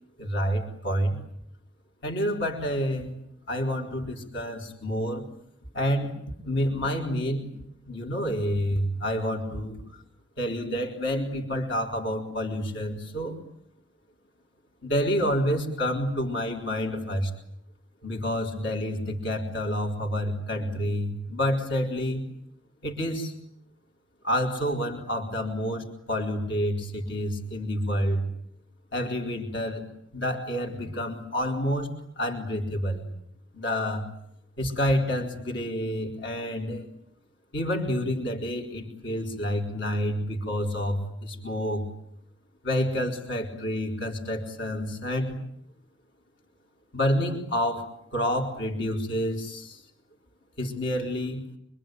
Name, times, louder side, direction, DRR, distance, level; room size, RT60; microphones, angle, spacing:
voice 1, 0.2-1.2 2.0-3.2 3.5-5.3 5.7-7.5 7.8-10.0 10.4-13.4 14.8-17.3 18.0-22.3 22.8-23.3 24.2-28.3 28.9-29.9 30.1-33.1 33.5-34.1 34.6-36.9 37.5-41.9 42.6-45.4 46.9-49.8 50.6-51.5, equal, 60° left, 1 dB, 4.2 m, -28 dB
25.5 x 25.0 x 9.3 m, 0.73 s
head